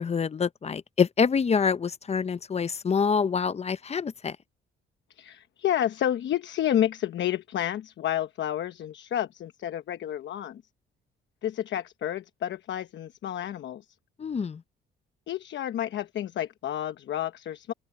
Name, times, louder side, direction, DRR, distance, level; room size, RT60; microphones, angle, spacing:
voice 1, 0.0-4.4 14.2-14.6, left 6 dB, 30° left, 0.7 m, -26 dB
voice 2, 5.1-10.6 11.4-13.8 15.3-17.7, left 11 dB, 65° left, 1.0 m, -30 dB
open air
cardioid pair, 90°, 20 cm